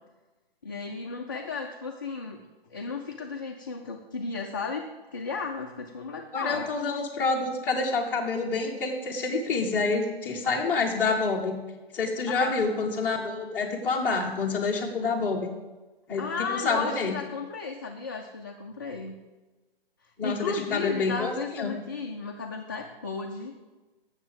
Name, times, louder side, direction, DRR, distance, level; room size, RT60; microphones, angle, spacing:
voice 1, 0.6-2.4 2.7-6.7 12.3-12.6 16.1-19.2 20.2-23.5, left 4 dB, 20° left, 0 dB, 0.4 m, -34 dB
voice 2, 6.3-11.6 11.9-15.5 16.1-16.2 16.6-17.1 20.2-21.7, left 4 dB, 5° left, -3 dB, 0.8 m, -27 dB
7.3 x 7.1 x 7.7 m, 1.2 s
figure-of-eight pair, 150°, 30 cm